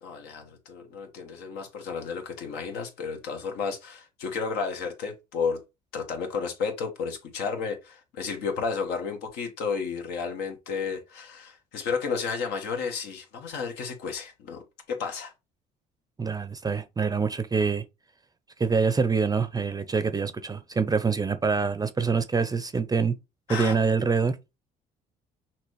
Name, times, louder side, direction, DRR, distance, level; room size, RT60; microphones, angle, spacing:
voice 1, 0.0-5.6 5.9-14.6 14.9-15.3 23.5-23.8, left 5 dB, 75° left, 1.4 m, -32 dB
voice 2, 16.2-17.8 18.6-23.1 23.5-24.4, right 5 dB, 20° right, 0.5 m, -25 dB
5.9 x 2.9 x 3.1 m
supercardioid pair, 75°, 17 cm